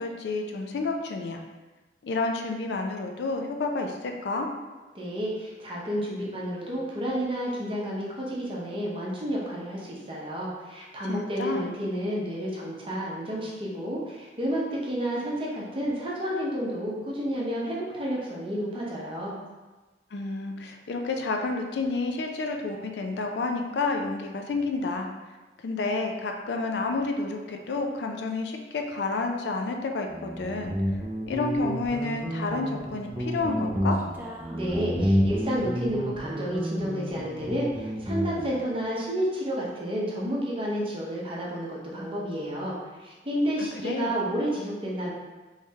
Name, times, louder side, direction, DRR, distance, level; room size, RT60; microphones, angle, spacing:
voice 1, 0.0-1.4 2.0-4.5 11.1-11.7 20.1-25.1 25.6-30.7 31.3-34.0 43.8-44.1, left 3 dB, 65° left, 3 dB, 0.4 m, -30 dB
voice 2, 4.9-19.4 34.5-45.1, equal, 30° right, -4 dB, 0.7 m, -30 dB
Guitar, 30.1-38.6, equal, 10° right, 0.4 m, -30 dB
3.4 x 3.1 x 2.8 m, 1.2 s
head